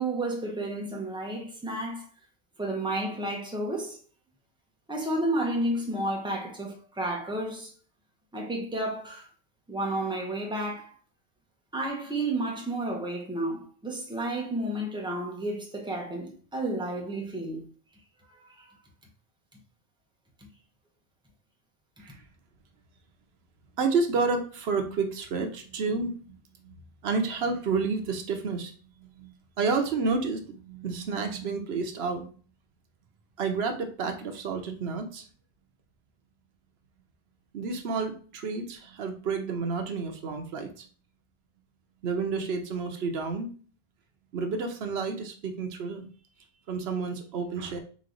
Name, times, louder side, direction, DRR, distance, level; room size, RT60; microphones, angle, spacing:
voice 1, 0.0-2.1 2.6-4.0 4.9-7.7 8.3-9.3 9.7-10.9 11.7-17.7 18.2-18.7, right 1 dB, 5° right, 0.9 m, -31 dB
voice 2, 23.8-26.4 26.6-26.7 27.0-28.7 29.0-32.3 33.4-35.2 37.5-40.9 42.0-43.5 44.3-46.1 46.7-47.8, right 4 dB, 80° right, 1.0 m, -30 dB
3.8 x 3.1 x 3.8 m
omnidirectional pair, 1.0 m